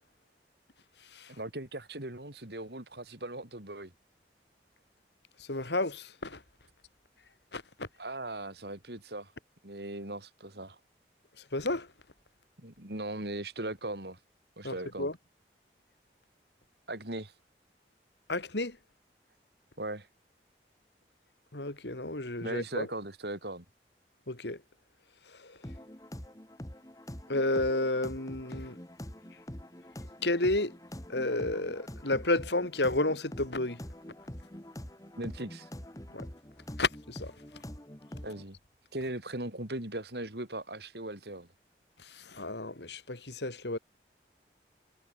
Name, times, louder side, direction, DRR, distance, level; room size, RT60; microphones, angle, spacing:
voice 1, 1.3-3.9 8.0-9.3 9.6-10.8 12.6-14.2 14.6-15.1 16.9-17.3 19.8-20.1 22.4-23.6 35.2-35.7 38.2-38.6 38.9-41.5, right 1 dB, 70° right, 4.1 m, -39 dB
voice 2, 5.4-6.4 7.5-7.9 11.5-11.9 14.6-15.1 18.3-18.8 21.5-22.9 24.3-24.6 25.3-25.6 27.3-28.8 30.2-30.7 31.1-33.8 36.1-36.3 36.8-37.3 42.0-43.8, left 2 dB, 80° left, 3.1 m, -31 dB
sound 1, 25.6-38.4, equal, 20° left, 1.8 m, -45 dB
head